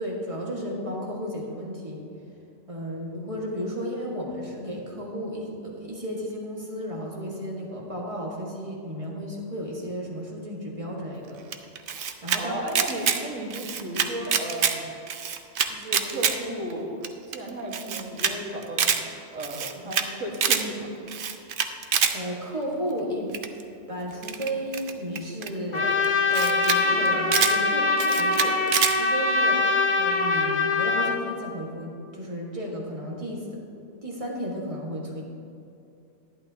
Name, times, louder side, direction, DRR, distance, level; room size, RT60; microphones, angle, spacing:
voice 1, 0.0-2.1 2.7-11.4 12.2-12.5 19.7-19.9 22.1-23.3 23.9-26.0 26.3-33.6 34.0-35.2, equal, 30° right, -3 dB, 1.5 m, -33 dB
Camera, 11.5-12.4 12.7-13.2 13.5-14.7 15.1-16.3 16.7-16.8 17.0-17.1 17.3-17.4 17.7-18.3 18.6-19.0 19.4-20.1 20.3-20.6 21.1-22.1 23.3-23.6 24.2-25.5 26.0-26.1 26.3-26.8 27.0-27.5 28.0-28.9, right 7 dB, 55° right, 0.7 m, -25 dB
voice 2, 12.4-14.9 15.7-19.1 19.3-20.9, right 1 dB, 90° right, -1 dB, 1.8 m, -34 dB
Trumpet, 25.7-31.2, left 3 dB, 40° left, 0.7 m, -23 dB
11.0 x 11.0 x 2.8 m, 2.6 s
omnidirectional pair, 1.2 m